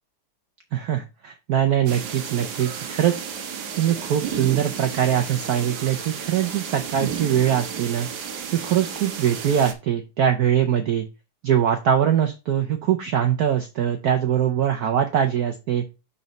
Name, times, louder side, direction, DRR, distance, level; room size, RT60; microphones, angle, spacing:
voice 1, 0.7-3.1 3.7-8.1 8.5-11.1 11.4-15.8, right 9 dB, 85° right, 5 dB, 0.8 m, -22 dB
sound 1, 1.9-9.7, right 7 dB, 60° right, 1.3 m, -33 dB
5.8 x 4.1 x 5.1 m, 0.28 s
omnidirectional pair, 2.4 m